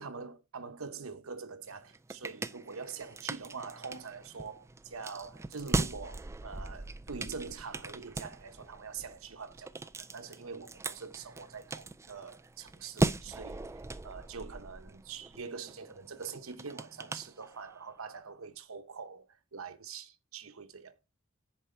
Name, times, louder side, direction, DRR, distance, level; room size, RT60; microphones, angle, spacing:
voice 1, 0.0-21.0, right 5 dB, 70° right, 0.9 m, -44 dB
sound 1, 1.7-17.9, right 2 dB, 15° right, 0.3 m, -39 dB
10.5 x 4.6 x 4.4 m
head